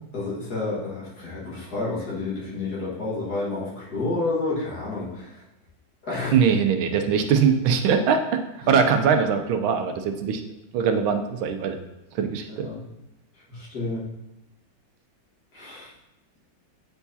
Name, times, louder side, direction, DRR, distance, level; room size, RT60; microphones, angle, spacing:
voice 1, 0.1-5.4 6.0-6.4 8.6-8.9 12.5-12.8 13.5-14.1 15.5-15.9, left 3 dB, 50° left, -7 dB, 2.1 m, -30 dB
voice 2, 6.3-8.4 8.7-10.4 10.7-11.8 12.1-12.7, right 6 dB, 85° right, 6 dB, 1.5 m, -21 dB
8.9 x 4.6 x 2.7 m, 0.93 s
omnidirectional pair, 2.2 m